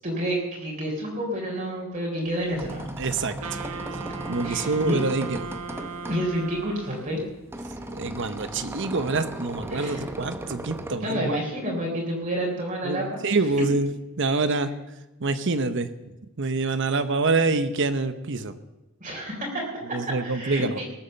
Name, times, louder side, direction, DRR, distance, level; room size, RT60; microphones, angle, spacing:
voice 1, 0.0-2.9 3.6-3.9 4.4-5.0 6.1-7.2 9.7-10.0 11.0-13.5 19.0-20.8, equal, 35° right, -2 dB, 4.0 m, -29 dB
sound 1, 2.3-11.0, right 1 dB, 10° right, 0.8 m, -37 dB
voice 2, 3.0-3.6 4.3-5.4 8.0-11.4 12.8-13.9 14.2-14.7 15.2-15.9 16.4-18.5 19.9-20.8, right 3 dB, 55° right, 11 dB, 0.9 m, -26 dB
Wind instrument woodwind instrument, 3.4-7.3, right 4 dB, 70° right, 1.1 m, -37 dB
19.0 x 8.6 x 6.7 m, 1.0 s
head